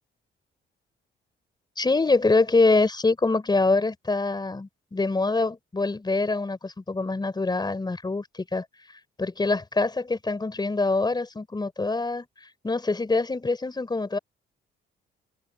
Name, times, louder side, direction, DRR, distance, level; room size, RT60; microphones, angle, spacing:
voice 1, 1.8-14.2, left 3 dB, 20° left, 4.5 m, -25 dB
cardioid pair, 90°, 20 cm